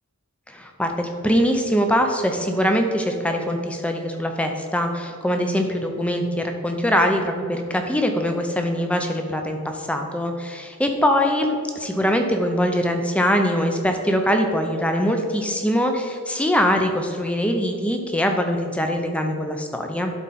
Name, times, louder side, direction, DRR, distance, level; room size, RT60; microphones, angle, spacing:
voice 1, 0.5-20.1, equal, 5° left, 4 dB, 0.6 m, -22 dB
11.0 x 4.4 x 4.2 m, 2.3 s
head